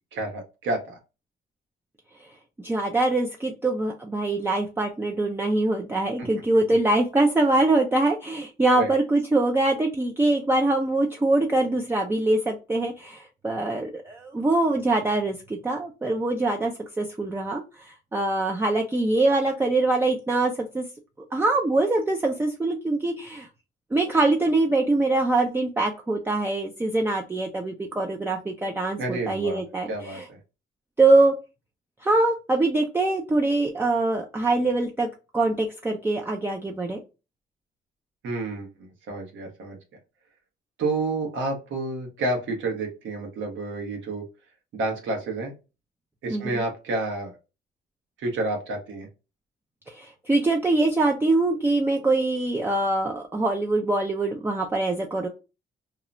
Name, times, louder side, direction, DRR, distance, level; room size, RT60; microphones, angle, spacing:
voice 1, 0.1-1.0 6.2-6.3 8.7-8.9 29.0-29.6 29.9-30.4 38.2-39.8 40.8-44.2 44.7-45.5 46.2-47.3 48.2-49.1, right 2 dB, 75° right, 1 dB, 1.1 m, -29 dB
voice 2, 2.6-20.8 21.3-23.5 23.9-30.3 31.0-31.3 32.0-35.1 35.3-37.0 46.3-46.6 49.9-55.3, right 2 dB, 10° right, 2 dB, 0.4 m, -23 dB
2.9 x 2.0 x 2.5 m, 0.29 s
cardioid pair, 90°, 20 cm